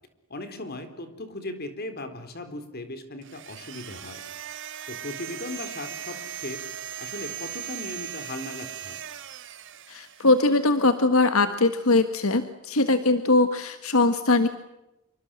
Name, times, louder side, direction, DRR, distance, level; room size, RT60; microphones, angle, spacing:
voice 1, 0.3-4.2 4.9-6.6 7.0-9.0, left 2 dB, 45° left, 9 dB, 4.0 m, -37 dB
sound 1, 3.2-10.6, right 10 dB, 60° right, 1.8 m, -38 dB
voice 2, 9.9-14.5, left 2 dB, 80° left, 9 dB, 1.6 m, -21 dB
27.5 x 24.5 x 7.7 m, 0.92 s
head